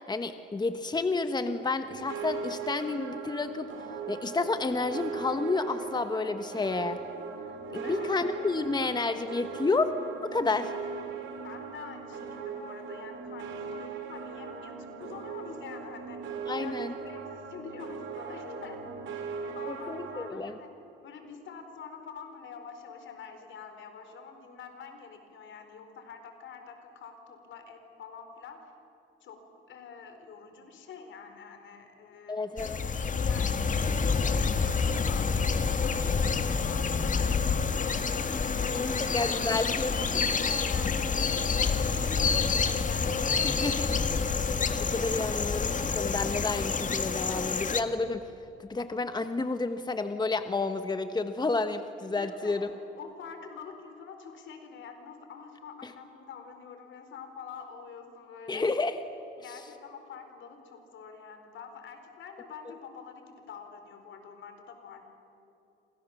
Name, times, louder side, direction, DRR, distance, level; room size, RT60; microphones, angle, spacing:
voice 1, 0.1-3.7 4.1-7.0 7.7-9.9 10.2-10.7 16.5-16.9 19.7-20.5 32.3-32.8 38.7-40.2 43.4-43.9 44.9-48.2 48.6-52.7 58.5-58.9, left 3 dB, 20° left, 9 dB, 1.3 m, -30 dB
sound 1, 1.9-20.3, right 5 dB, 75° right, 4.3 m, -39 dB
voice 2, 7.7-8.1 11.4-16.3 16.6-18.8 19.1-20.7 21.0-28.7 29.2-32.4 33.2-39.1 40.4-43.9 52.1-52.7 53.0-58.7 59.4-65.0, left 6 dB, 75° left, 6 dB, 4.5 m, -47 dB
sound 2, 32.6-47.8, left 5 dB, 40° left, 1.8 m, -28 dB
29.0 x 26.0 x 7.3 m, 2.9 s
cardioid pair, 90°, 20 cm